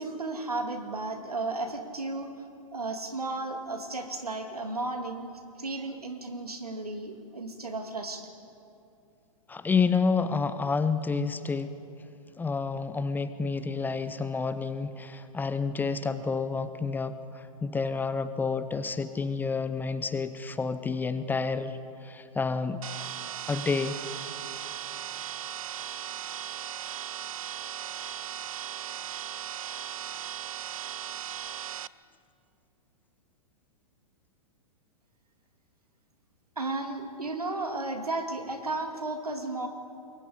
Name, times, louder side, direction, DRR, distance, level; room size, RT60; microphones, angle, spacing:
voice 1, 0.0-2.3 2.7-8.3 36.6-39.7, right 2 dB, 85° right, 6 dB, 2.3 m, -34 dB
voice 2, 9.5-11.7 12.4-22.8 23.5-24.0, left 4 dB, 10° left, 12 dB, 0.7 m, -29 dB
sound 1, 22.8-31.9, right 10 dB, 65° right, 0.5 m, -37 dB
27.5 x 22.0 x 5.0 m, 2.6 s
figure-of-eight pair, 110°, 19 cm